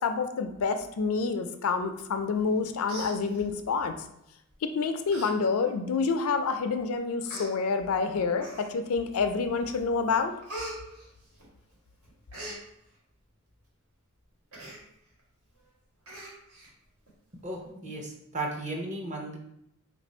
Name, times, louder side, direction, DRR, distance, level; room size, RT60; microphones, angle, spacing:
voice 1, 0.0-3.9 4.6-10.3, left 4 dB, 80° left, 8 dB, 0.4 m, -28 dB
Human voice, 2.4-2.6 2.8-3.8 4.5-4.7 5.1-5.3 5.7-5.8 6.6-6.7 7.3-7.5 8.4-8.9 9.4-9.8 10.0-11.7 12.0-12.6 14.5-14.8 15.2-15.3 15.6-15.7 16.1-16.7 17.1-17.2, right 1 dB, 75° right, 1.4 m, -42 dB
voice 2, 17.4-19.4, right 2 dB, 35° right, 0 dB, 0.7 m, -35 dB
3.2 x 2.5 x 4.2 m, 0.79 s
head